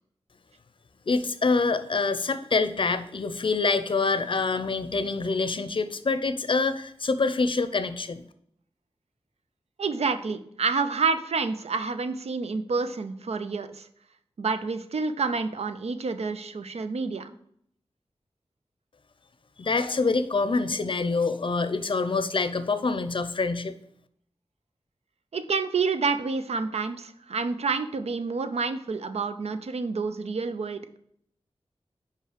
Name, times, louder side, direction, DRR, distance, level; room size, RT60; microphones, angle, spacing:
voice 1, 1.1-8.2 19.6-23.7, left 4 dB, 55° left, 11 dB, 0.5 m, -26 dB
voice 2, 9.8-13.9 14.4-17.3 25.3-31.0, right 4 dB, 80° right, 9 dB, 0.5 m, -28 dB
5.5 x 4.9 x 5.0 m, 0.69 s
wide cardioid pair, 90°, 11 cm